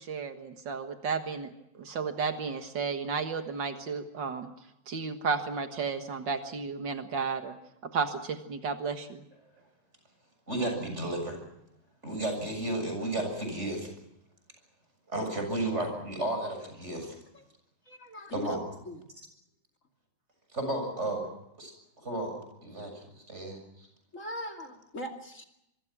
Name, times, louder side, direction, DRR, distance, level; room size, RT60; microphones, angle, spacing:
voice 1, 0.0-4.5 4.9-7.6 7.8-9.2, right 5 dB, 80° right, 6 dB, 2.2 m, -33 dB
voice 2, 10.5-11.4 12.0-13.9 15.1-17.2 18.3-18.6 20.5-21.2 21.6-21.7 22.0-22.9 23.3-23.6, right 1 dB, 40° right, 5 dB, 7.6 m, -33 dB
voice 3, 17.9-18.6 18.8-19.0 24.1-25.4, left 1 dB, 45° left, 3 dB, 2.8 m, -40 dB
25.0 x 24.5 x 6.1 m, 0.81 s
omnidirectional pair, 1.9 m